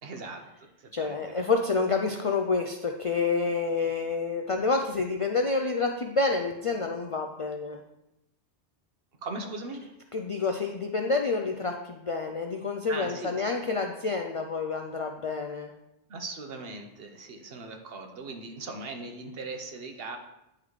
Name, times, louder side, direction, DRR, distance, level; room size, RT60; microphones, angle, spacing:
voice 1, 0.0-1.5 9.2-9.8 12.9-13.3 16.1-20.2, right 3 dB, 65° right, 4 dB, 1.0 m, -39 dB
voice 2, 0.9-7.8 10.1-15.7, left 4 dB, 55° left, 3 dB, 0.3 m, -28 dB
10.0 x 3.9 x 3.1 m, 0.89 s
omnidirectional pair, 1.1 m